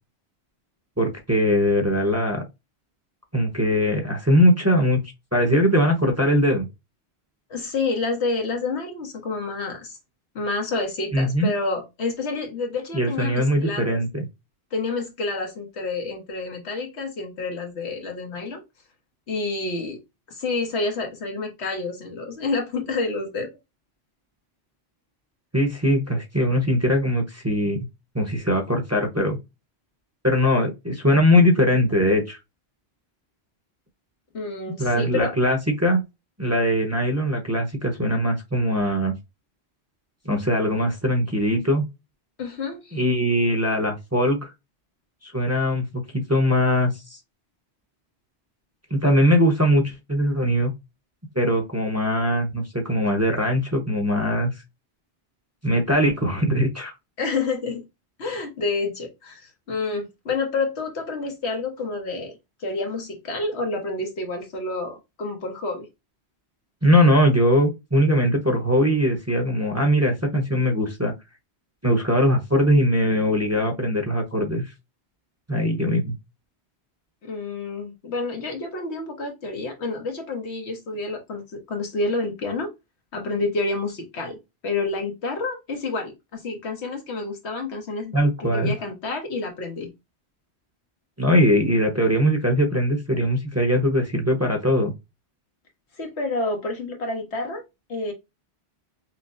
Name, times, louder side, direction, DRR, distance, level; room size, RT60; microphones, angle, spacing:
voice 1, 1.0-2.4 3.3-5.0 5.3-6.7 11.1-11.5 12.9-14.2 25.5-27.9 28.1-29.4 30.2-32.4 34.8-36.0 36.4-39.1 40.2-41.9 42.9-44.5 45.2-45.9 46.1-47.2 48.9-50.7 51.3-54.5 55.6-56.9 66.8-71.1 71.8-74.6 75.5-76.1 88.1-88.7 91.2-94.9, equal, 15° right, 0.8 m, -21 dB
voice 2, 7.5-10.0 10.3-14.0 14.7-18.6 19.3-20.0 20.3-23.5 34.3-35.4 42.4-43.0 57.2-57.8 58.2-65.9 77.2-82.7 83.1-84.4 84.6-88.1 88.4-89.9 96.0-97.6 97.9-98.1, left 3 dB, 85° left, 1.4 m, -29 dB
5.7 x 2.1 x 2.6 m
omnidirectional pair, 1.1 m